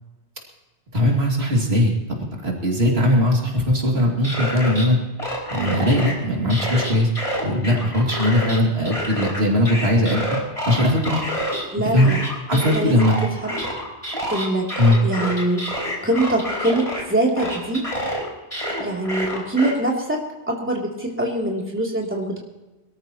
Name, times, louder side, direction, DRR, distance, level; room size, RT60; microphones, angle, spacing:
voice 1, 0.9-5.0 5.5-7.1 7.4-10.2 10.6-11.2 11.9-12.2 12.5-13.2 14.8-15.0, left 1 dB, 65° right, -1 dB, 2.9 m, -19 dB
sound 1, 4.0-4.9 5.2-6.1 6.5-8.6 8.9-11.6 12.0-17.0 17.4-19.7, equal, 30° left, 4.0 m, -28 dB
voice 2, 11.7-12.2 12.5-13.1 13.4-13.6 14.3-14.7 15.0-15.6 16.0-17.8 18.8-20.2 20.5-22.4, right 1 dB, 10° right, -2 dB, 3.0 m, -23 dB
23.5 x 13.5 x 3.0 m, 1.1 s
omnidirectional pair, 1.1 m